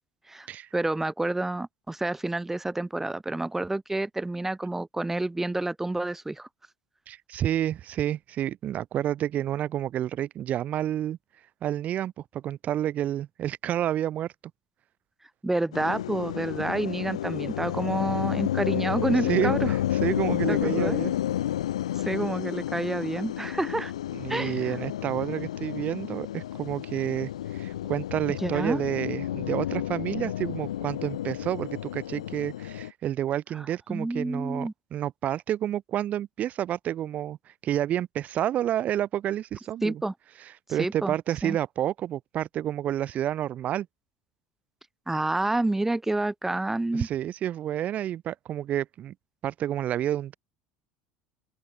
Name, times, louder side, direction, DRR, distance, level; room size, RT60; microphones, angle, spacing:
voice 1, 0.7-6.5 15.4-19.7 20.5-21.0 22.0-23.9 24.3-24.8 28.4-28.8 33.9-34.7 39.8-40.1 40.8-41.1 41.4-41.6 45.1-47.1, right 2 dB, 10° right, 0.5 m, -29 dB
voice 2, 7.1-11.2 11.6-14.3 19.3-21.1 24.1-40.0 40.7-43.9 46.9-49.1 49.4-50.3, right 11 dB, 50° right, 0.9 m, -29 dB
sound 1, 15.7-32.9, left 12 dB, 90° left, 1.3 m, -31 dB
open air
hypercardioid pair, 80°, 3 cm